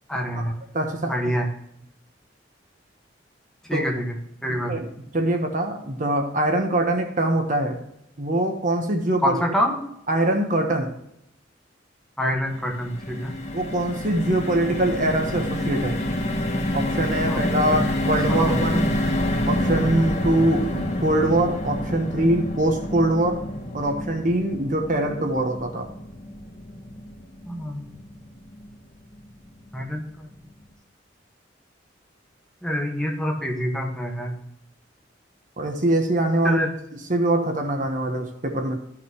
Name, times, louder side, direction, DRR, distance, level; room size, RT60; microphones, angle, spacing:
voice 1, 0.1-0.5 1.1-1.5 3.7-4.1 4.4-4.8 9.2-9.8 12.2-13.3 17.3-17.4 17.7-17.8 18.3-18.6 27.4-27.9 29.7-30.3 32.6-34.3 36.4-36.7, equal, 5° left, 0 dB, 1.5 m, -26 dB
voice 2, 0.7-1.1 3.7-3.8 4.7-4.9 5.1-7.8 8.2-9.4 10.1-10.9 13.5-16.0 16.7-18.8 19.5-23.4 23.7-25.9 35.6-36.6 36.9-38.8, right 1 dB, 45° right, 4 dB, 1.2 m, -23 dB
sound 1, 12.5-28.8 29.2-29.3 29.6-29.8, left 1 dB, 35° left, 1.4 m, -28 dB
13.5 x 5.9 x 3.1 m, 0.77 s
head